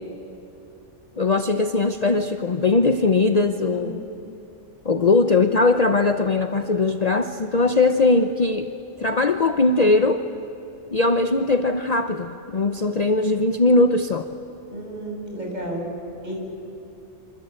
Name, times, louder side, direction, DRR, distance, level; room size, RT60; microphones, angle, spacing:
voice 1, 1.2-4.0 4.8-8.7 9.0-10.2 10.9-14.3, left 3 dB, 35° left, 7 dB, 0.9 m, -20 dB
voice 2, 14.7-15.9 16.2-16.4, right 1 dB, 35° right, 0 dB, 6.2 m, -32 dB
25.5 x 25.5 x 8.8 m, 2.9 s
omnidirectional pair, 1.2 m